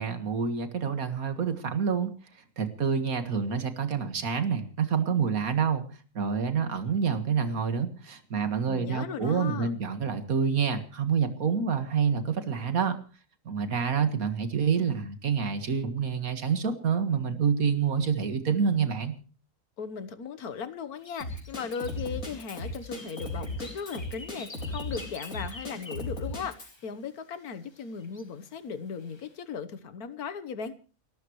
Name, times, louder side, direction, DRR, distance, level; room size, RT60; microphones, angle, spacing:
voice 1, 0.0-2.1 2.6-5.9 6.2-13.0 13.5-19.2, right 6 dB, 75° right, 9 dB, 2.1 m, -27 dB
voice 2, 8.7-9.7 19.8-30.8, left 6 dB, 85° left, 12 dB, 1.7 m, -37 dB
sound 1, 21.0-26.9 27.7-28.5 29.0-29.3, left 2 dB, 20° left, 1.4 m, -48 dB
Drum kit, 21.2-26.7, left 1 dB, 65° left, 5.2 m, -36 dB
30.0 x 13.5 x 3.1 m, 0.36 s
omnidirectional pair, 1.5 m